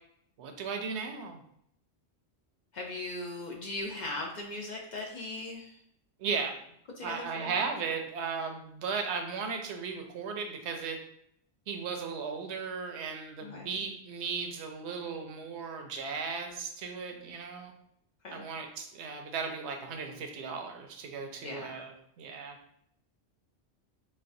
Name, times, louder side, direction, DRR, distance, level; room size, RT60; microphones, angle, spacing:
voice 1, 0.4-1.4 6.2-6.6 7.0-11.0 11.7-17.7 18.3-22.6, right 5 dB, 85° right, 4 dB, 0.9 m, -36 dB
voice 2, 2.7-5.8 7.0-7.6 13.4-13.7 18.2-18.5 21.4-21.8, left 2 dB, 55° left, 0 dB, 0.5 m, -39 dB
4.1 x 2.2 x 2.6 m, 0.73 s
omnidirectional pair, 1.1 m